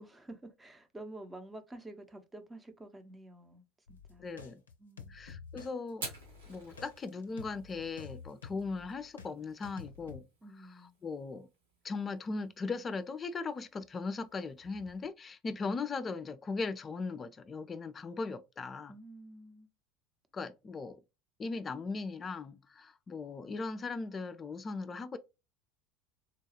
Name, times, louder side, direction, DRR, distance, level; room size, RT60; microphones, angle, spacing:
voice 1, 0.0-4.3 4.8-5.2 10.4-10.9 18.9-19.7, right 2 dB, 15° right, 0.7 m, -49 dB
sound 1, 3.9-9.3 9.6-10.2, left 6 dB, 75° left, 0.5 m, -50 dB
voice 2, 4.2-4.6 5.1-6.1 6.5-10.2 11.0-11.5 11.8-18.9 20.3-21.0 21.4-25.2, left 4 dB, 25° left, 0.4 m, -38 dB
Fire, 5.9-15.1, right 3 dB, 75° right, 1.2 m, -52 dB
3.9 x 2.3 x 2.8 m
figure-of-eight pair, 70°, 0 cm